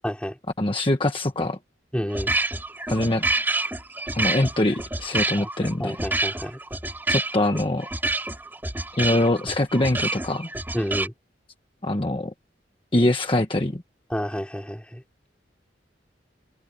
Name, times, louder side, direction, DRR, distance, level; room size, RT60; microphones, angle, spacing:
voice 1, 0.0-0.4 1.9-2.3 5.4-5.5 5.8-6.6 10.7-11.1 14.1-15.0, equal, 5° left, 4.6 m, -29 dB
voice 2, 0.6-1.6 2.9-3.2 4.1-6.0 7.1-7.9 9.0-10.5 11.8-12.3 12.9-13.8, left 1 dB, 30° left, 1.3 m, -23 dB
sound 1, 2.1-11.1, right 2 dB, 10° right, 3.5 m, -28 dB
open air
head